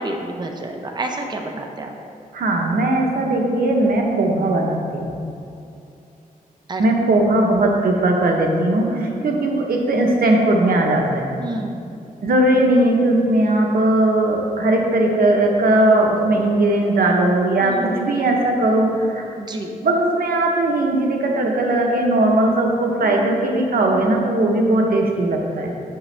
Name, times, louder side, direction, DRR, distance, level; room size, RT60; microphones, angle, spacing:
voice 1, 0.0-1.9 6.7-6.8 11.4-11.9 17.6-17.9 19.4-19.7 23.0-23.4, right 2 dB, 30° right, 3 dB, 0.7 m, -30 dB
voice 2, 2.3-5.1 6.8-11.3 12.2-19.2 19.8-25.8, right 1 dB, 85° right, 1 dB, 1.0 m, -18 dB
7.9 x 7.0 x 3.3 m, 2.6 s
wide cardioid pair, 95°, 15 cm